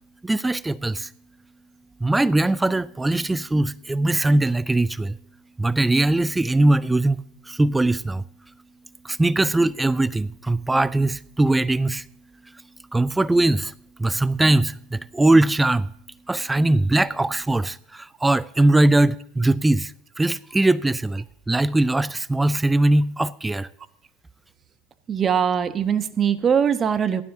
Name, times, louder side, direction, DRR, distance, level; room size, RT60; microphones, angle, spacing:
voice 1, 0.2-1.1 2.0-5.2 5.6-7.2 7.5-8.2 9.0-12.0 12.9-13.7 14.0-15.9 16.3-19.9 20.2-23.7, right 2 dB, 10° right, 0.4 m, -21 dB
voice 2, 25.1-27.2, right 7 dB, 30° right, 1.0 m, -21 dB
16.0 x 12.5 x 2.7 m
hypercardioid pair, 80°, 0 cm